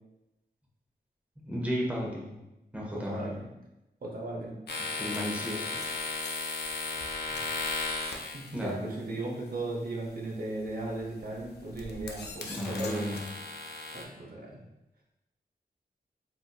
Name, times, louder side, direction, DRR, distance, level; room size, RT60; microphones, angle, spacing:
voice 1, 1.4-2.4 2.7-3.4 5.0-5.7 8.5-9.0 12.5-13.2, equal, 10° right, -3 dB, 0.7 m, -34 dB
voice 2, 2.9-3.4 4.0-4.5 8.3-13.1 13.9-14.6, right 2 dB, 60° right, -1 dB, 0.7 m, -36 dB
sound 1, 4.7-8.7 10.7-11.0 11.5-14.0, left 3 dB, 80° left, 0.4 m, -36 dB
3.8 x 2.5 x 2.3 m, 0.95 s
wide cardioid pair, 115°, 17 cm